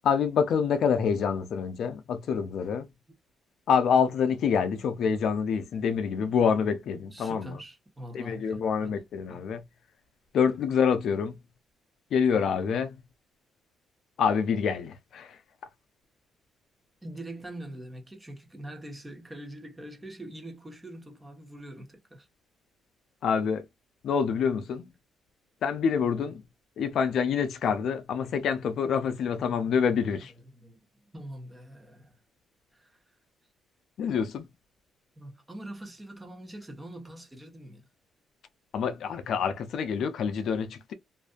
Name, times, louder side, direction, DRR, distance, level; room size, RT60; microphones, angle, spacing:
voice 1, 0.0-2.9 3.7-7.6 8.1-9.6 10.3-11.4 12.1-13.0 14.2-15.4 23.2-23.6 24.0-24.8 25.6-26.4 26.8-30.3 34.0-34.5 38.7-40.9, left 6 dB, 70° left, 0.5 m, -26 dB
voice 2, 7.1-9.0 9.3-9.4 17.0-22.3 25.9-26.1 29.3-29.6 30.5-30.8 31.1-32.2 32.7-33.0 35.2-37.9, right 1 dB, 15° right, 1.0 m, -43 dB
2.6 x 2.5 x 2.3 m
cardioid pair, 90°, 0 cm